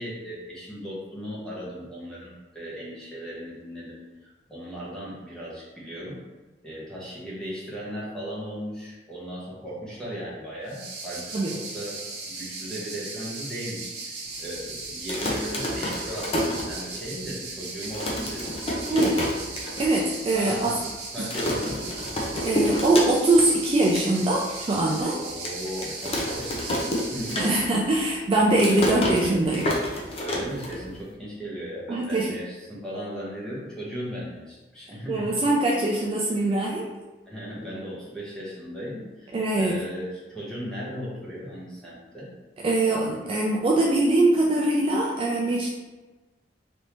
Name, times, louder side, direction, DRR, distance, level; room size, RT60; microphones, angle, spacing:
voice 1, 0.0-6.2 6.6-19.3 20.3-20.9 21.1-21.9 25.1-27.4 30.2-35.3 37.3-39.3 39.6-42.3, equal, 5° left, -7 dB, 0.9 m, -37 dB
sound 1, 10.7-27.6, right 3 dB, 65° right, 0.8 m, -37 dB
sound 2, 14.9-17.2 17.5-17.6 17.8-19.9 20.2-20.3 20.5-20.9 21.3-23.5 23.7-24.1 24.6-24.7 25.5-27.9 28.2-31.1, left 1 dB, 35° left, 0.6 m, -29 dB
voice 2, 19.8-20.8 22.4-25.2 27.4-29.7 31.9-32.3 35.1-36.9 39.3-39.8 42.6-45.7, right 2 dB, 30° right, -3 dB, 0.3 m, -22 dB
3.3 x 2.6 x 2.8 m, 1.2 s
head